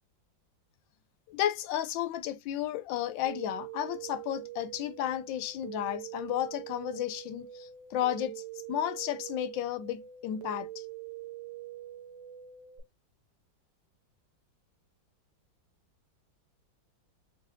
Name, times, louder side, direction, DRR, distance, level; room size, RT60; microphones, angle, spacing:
voice 1, 1.3-8.4 8.7-10.8, left 11 dB, 80° left, 1.3 m, -33 dB
sound 1, 3.2-12.8, right 13 dB, 90° right, 1.5 m, -44 dB
3.9 x 3.3 x 2.5 m
omnidirectional pair, 2.0 m